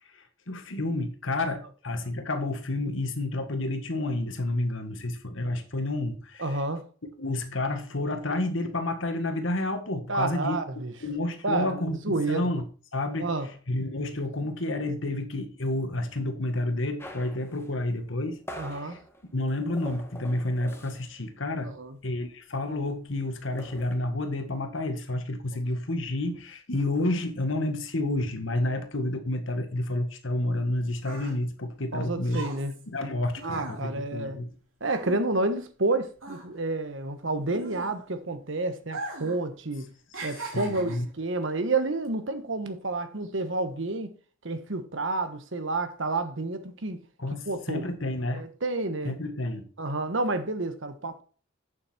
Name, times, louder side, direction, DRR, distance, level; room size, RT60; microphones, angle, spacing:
voice 1, 0.5-6.6 7.2-10.6 11.0-12.6 12.9-13.3 13.7-18.4 18.7-19.0 19.3-21.7 22.0-32.4 32.9-34.5 40.5-41.1 47.2-48.4 49.0-49.6, left 2 dB, 70° left, 1.7 m, -30 dB
voice 2, 6.4-6.8 10.1-10.9 11.4-12.5 13.2-13.5 18.5-19.0 21.6-22.0 31.9-32.8 33.4-34.4 34.8-39.9 40.2-44.1 44.4-47.0 47.5-47.8 48.3-49.1 49.8-51.2, right 2 dB, 65° right, 1.2 m, -30 dB
sound 1, 17.0-21.2 21.5-21.7 22.0-23.9, equal, 10° left, 1.4 m, -45 dB
sound 2, 30.5-35.9 36.1-38.3 38.8-39.4 39.7-41.2 41.9-42.1, right 2 dB, 85° right, 3.4 m, -40 dB
8.6 x 7.4 x 4.4 m
head